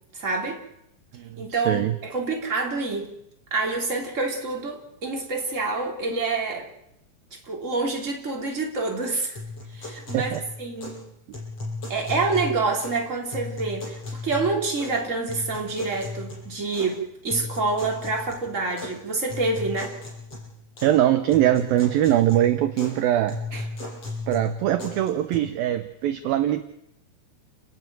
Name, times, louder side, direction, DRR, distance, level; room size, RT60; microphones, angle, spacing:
voice 1, 0.1-0.6 1.4-3.1 3.5-6.7 7.4-9.4 9.7-11.1 11.9-14.0 14.2-19.9 23.5-23.6, right 3 dB, 20° right, 0 dB, 3.1 m, -27 dB
voice 2, 1.1-2.0 10.1-10.4 20.8-23.4 24.3-26.6, right 12 dB, 75° right, 8 dB, 2.2 m, -22 dB
sound 1, 9.4-11.0 11.3-13.0 13.3-15.0 15.3-16.9 17.3-18.9 19.3-21.0 21.3-23.0 23.3-25.4, left 2 dB, 30° left, 8.4 m, -36 dB
30.0 x 12.5 x 9.4 m, 0.81 s
omnidirectional pair, 5.3 m